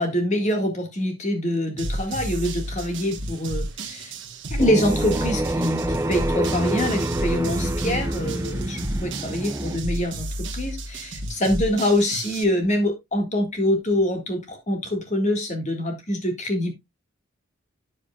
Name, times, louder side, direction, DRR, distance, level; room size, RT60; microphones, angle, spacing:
voice 1, 0.0-4.1 4.5-16.7, left 1 dB, 35° left, 1.9 m, -25 dB
sound 1, 1.8-12.4, right 1 dB, 60° right, 1.3 m, -32 dB
sound 2, 4.6-9.8, right 1 dB, 15° right, 0.4 m, -27 dB
9.8 x 7.4 x 2.4 m
head